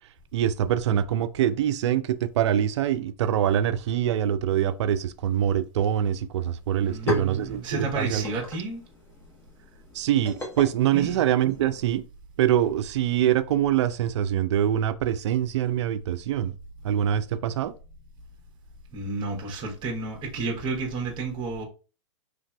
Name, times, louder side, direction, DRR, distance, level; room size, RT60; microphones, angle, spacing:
voice 1, 0.3-8.2 9.9-12.0 12.4-16.5 16.8-17.7, right 10 dB, 65° right, 0.4 m, -24 dB
sound 1, 6.4-6.5 6.7-11.9, left 1 dB, 15° left, 0.8 m, -36 dB
voice 2, 6.8-8.8 10.9-11.2 18.9-21.6, right 3 dB, 30° right, 0.9 m, -31 dB
3.2 x 2.5 x 2.2 m
hypercardioid pair, 120°, 16 cm